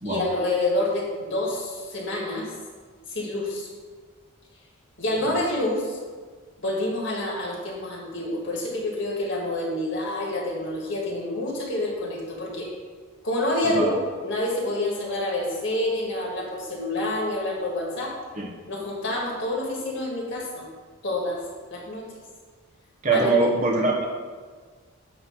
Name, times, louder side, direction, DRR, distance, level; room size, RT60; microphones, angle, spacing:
voice 1, 0.0-2.5 3.1-3.7 5.0-6.0 6.6-12.7 13.2-14.0 14.2-18.2 18.7-20.6 21.0-21.4 21.7-22.1 23.1-23.4, left 1 dB, 55° left, -2 dB, 1.7 m, -28 dB
voice 2, 23.0-24.1, right 3 dB, 35° right, 0 dB, 0.9 m, -23 dB
9.0 x 3.1 x 6.0 m, 1.5 s
head